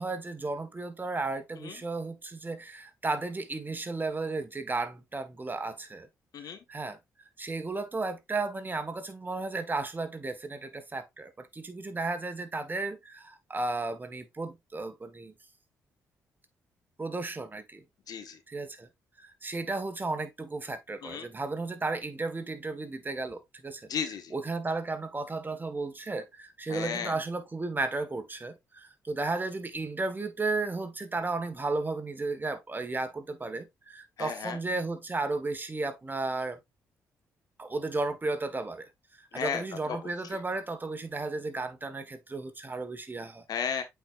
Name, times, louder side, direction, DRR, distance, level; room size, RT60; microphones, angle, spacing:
voice 1, 0.0-6.1 6.4-7.0 7.4-15.3 17.0-17.8 18.5-18.9 19.2-23.9 24.3-36.6 37.6-38.9 39.2-43.4, right 3 dB, 25° right, 1.5 m, -34 dB
voice 2, 18.1-18.4 21.0-21.3 23.9-24.3 26.7-27.1 34.2-34.6 39.3-40.0 43.5-43.8, left 7 dB, 65° left, 1.4 m, -34 dB
8.1 x 4.7 x 2.5 m
supercardioid pair, 50°, 7 cm